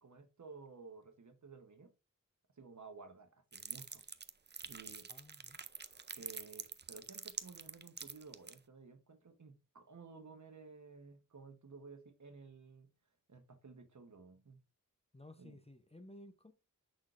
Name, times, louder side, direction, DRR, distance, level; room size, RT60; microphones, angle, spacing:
voice 1, 0.0-1.9 2.6-4.1 4.6-5.1 6.2-12.9 13.3-14.6 15.4-15.6, right 4 dB, 60° right, 1.1 m, -55 dB
sound 1, 3.5-8.6, right 5 dB, 30° right, 0.5 m, -46 dB
voice 2, 5.1-5.6 15.1-16.5, left 1 dB, 20° left, 0.7 m, -56 dB
6.4 x 6.1 x 2.5 m
wide cardioid pair, 75°, 34 cm